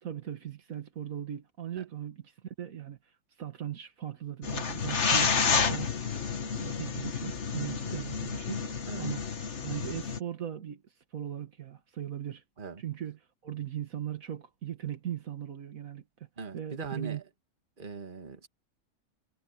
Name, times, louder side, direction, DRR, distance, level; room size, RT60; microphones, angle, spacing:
voice 1, 0.0-3.0 3.4-5.9 6.6-8.6 9.0-9.2 9.6-10.8 11.1-12.4 12.8-16.0 16.5-17.2, right 10 dB, 75° right, 1.8 m, -38 dB
sound 1, 4.4-10.2, left 5 dB, 55° left, 1.6 m, -30 dB
voice 2, 7.7-8.0 8.9-9.1 12.6-12.8 16.4-17.2 17.8-18.5, right 5 dB, 35° right, 1.8 m, -41 dB
omnidirectional pair, 1.5 m